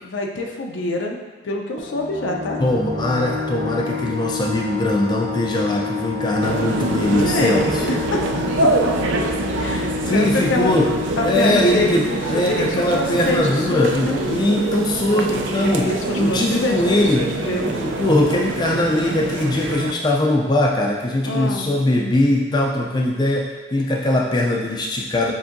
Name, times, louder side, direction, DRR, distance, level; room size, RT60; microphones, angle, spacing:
voice 1, 0.0-1.2 1.4-2.6 7.2-7.6 7.9-8.2 8.6-8.7 9.6-10.7 11.2-14.2 15.1-15.2 15.6-17.7 21.2-21.7, left 2 dB, 85° left, 1 dB, 0.5 m, -25 dB
sound 1, 1.8-13.1, left 5 dB, 30° right, 0.5 m, -29 dB
voice 2, 2.6-8.0 10.1-15.9 16.2-17.2 17.6-25.3, left 1 dB, 20° left, -1 dB, 0.3 m, -21 dB
sound 2, 6.4-19.9, right 3 dB, 85° right, 0.4 m, -25 dB
7.0 x 2.7 x 2.5 m, 1.2 s
head